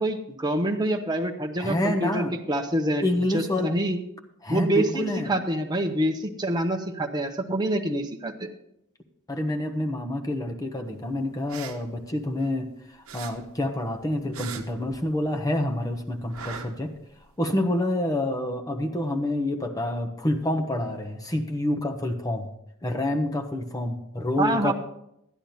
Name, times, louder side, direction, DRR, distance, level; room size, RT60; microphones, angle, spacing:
voice 1, 0.0-3.0 3.3-4.0 4.5-8.5 24.4-24.7, right 1 dB, 20° right, 3 dB, 1.0 m, -26 dB
voice 2, 1.6-2.3 3.0-3.7 4.4-5.3 9.3-16.9 17.4-22.5 22.8-24.7, left 1 dB, 15° left, 3 dB, 1.1 m, -28 dB
sound 1, 11.3-12.7 13.1-15.5 15.7-17.3, right 6 dB, 65° right, 1.0 m, -41 dB
12.0 x 9.9 x 4.3 m, 0.78 s
head